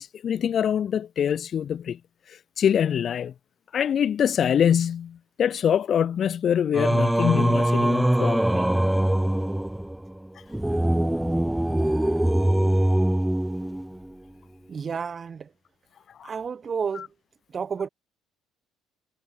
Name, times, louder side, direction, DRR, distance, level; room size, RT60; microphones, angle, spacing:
voice 1, 0.0-2.0 2.6-3.3 3.7-8.6 16.2-16.3 17.0-17.1, left 8 dB, 45° left, 0.3 m, -24 dB
Singing, 6.7-14.1, right 1 dB, 5° right, 1.6 m, -23 dB
voice 2, 14.7-15.5 16.2-17.1 17.5-17.9, right 6 dB, 35° right, 4.3 m, -31 dB
figure-of-eight pair, 50°, 0 cm